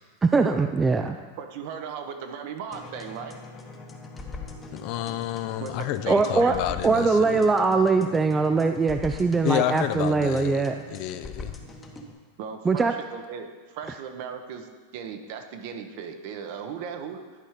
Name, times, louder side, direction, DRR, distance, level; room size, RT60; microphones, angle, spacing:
voice 1, 0.2-1.2 6.1-6.5 6.8-10.8 12.7-12.9, right 4 dB, 15° right, 6 dB, 0.3 m, -22 dB
voice 2, 1.4-3.4 5.6-6.8 8.0-8.1 12.4-17.2, right 7 dB, 60° right, 6 dB, 0.9 m, -37 dB
sound 1, 2.7-12.1, left 3 dB, 20° left, 1.0 m, -42 dB
voice 3, 4.7-7.5 9.4-11.5, left 13 dB, 50° left, 11 dB, 0.4 m, -29 dB
11.0 x 4.5 x 5.0 m, 1.5 s
hypercardioid pair, 120°, 0 cm